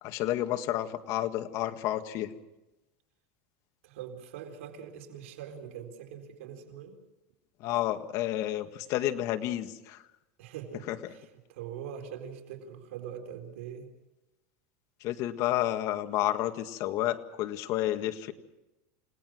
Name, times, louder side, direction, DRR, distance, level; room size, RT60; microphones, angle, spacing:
voice 1, 0.0-2.3 7.6-10.0 10.9-11.0 15.0-18.3, left 13 dB, 50° left, 8 dB, 1.8 m, -30 dB
voice 2, 3.8-7.0 10.4-13.9, right 8 dB, 85° right, 4 dB, 4.1 m, -43 dB
29.0 x 18.5 x 6.3 m, 1.0 s
supercardioid pair, 145°, 7 cm